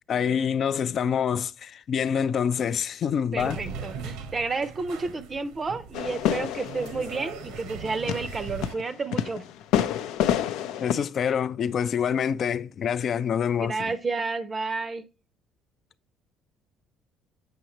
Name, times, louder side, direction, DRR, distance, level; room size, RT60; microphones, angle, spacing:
voice 1, 0.1-3.6 10.8-13.8, left 7 dB, 40° left, 0.4 m, -26 dB
voice 2, 3.3-9.4 13.6-15.0, right 3 dB, 20° right, 0.6 m, -31 dB
sound 1, 3.4-8.8, right 5 dB, 90° right, 1.0 m, -39 dB
sound 2, 5.9-10.9, left 10 dB, 90° left, 0.6 m, -28 dB
7.8 x 6.3 x 2.9 m
cardioid pair, 165°, 0 cm